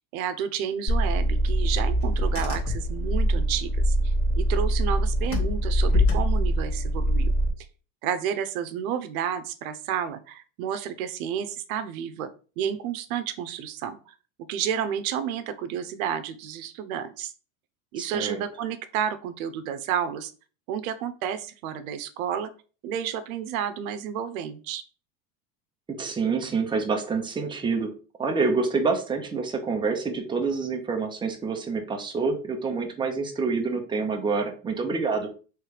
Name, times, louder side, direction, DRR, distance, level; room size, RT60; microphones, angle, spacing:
voice 1, 0.1-7.3 8.0-12.3 12.6-14.1 14.5-17.3 17.9-20.3 20.7-22.5 22.8-24.8, right 8 dB, 85° right, 11 dB, 0.7 m, -31 dB
Car / Engine, 0.9-7.5, equal, 45° left, 1.6 m, -23 dB
voice 2, 18.0-18.4 25.9-27.9 28.2-35.3, right 4 dB, 10° right, 3 dB, 0.7 m, -27 dB
3.3 x 3.2 x 4.8 m, 0.37 s
supercardioid pair, 135°, 41 cm